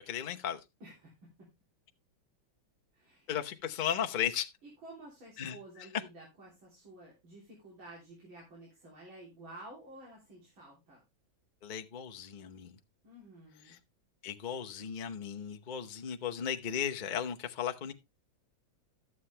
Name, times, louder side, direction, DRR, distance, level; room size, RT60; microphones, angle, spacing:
voice 1, 0.1-0.6 3.3-4.5 5.4-5.6 11.6-12.8 13.7-13.8 14.2-17.9, left 9 dB, 45° left, 0.6 m, -35 dB
voice 2, 0.8-1.5 2.9-3.5 4.8-11.0 13.0-13.8, right 1 dB, 80° right, 4.1 m, -52 dB
12.5 x 7.5 x 3.3 m
omnidirectional pair, 2.2 m